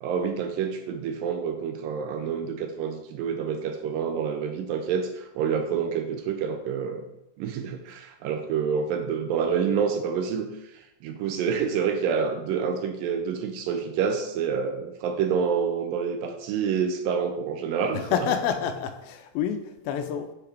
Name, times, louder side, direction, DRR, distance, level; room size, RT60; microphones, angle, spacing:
voice 1, 0.0-7.1 7.4-18.1, right 6 dB, 80° right, 2.1 m, -28 dB
voice 2, 18.1-20.3, left 8 dB, 80° left, 2.4 m, -28 dB
8.4 x 5.6 x 3.4 m
omnidirectional pair, 4.3 m